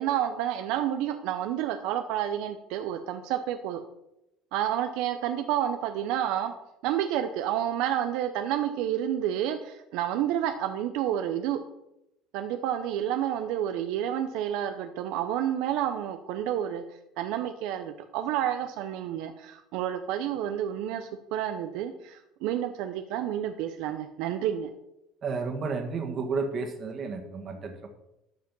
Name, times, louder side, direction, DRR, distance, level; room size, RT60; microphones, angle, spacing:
voice 1, 0.0-3.8 4.5-6.5 6.8-11.6 12.3-16.8 17.2-24.7, right 10 dB, 75° right, 8 dB, 0.7 m, -30 dB
voice 2, 25.2-27.9, right 4 dB, 40° right, 4 dB, 1.8 m, -32 dB
12.0 x 5.1 x 5.3 m, 0.86 s
cardioid pair, 130°, 0 cm